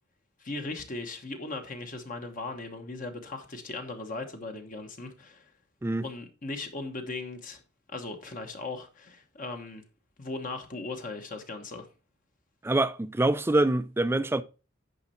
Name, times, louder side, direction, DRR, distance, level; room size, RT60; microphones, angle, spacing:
voice 1, 0.4-5.5 6.0-7.6 7.9-9.8 10.2-11.9, left 3 dB, 45° left, 1.1 m, -38 dB
voice 2, 12.6-14.4, right 2 dB, 10° right, 0.4 m, -25 dB
9.6 x 5.3 x 4.3 m
head